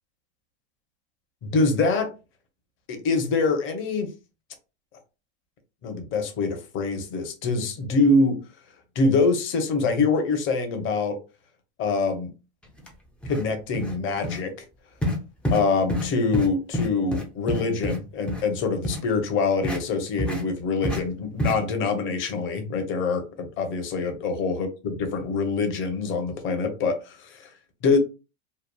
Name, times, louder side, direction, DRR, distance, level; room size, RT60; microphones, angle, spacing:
voice 1, 1.4-2.1 2.9-4.1 5.8-8.4 9.0-11.2 11.8-12.3 13.3-14.5 15.5-27.5 27.8-28.0, left 3 dB, 35° left, 0.8 m, -24 dB
sound 1, 12.8-12.9 13.2-13.5 13.7-14.0 14.2-14.4 15.0-15.2 15.4-15.6 15.9-16.1 16.3-16.5 16.7-18.0 18.3-18.4 18.8-19.0 19.6-19.8 20.2-20.4 20.8-21.0 21.4-21.5, equal, 5° left, 0.3 m, -27 dB
2.9 x 2.3 x 2.2 m
hypercardioid pair, 110°, 35 cm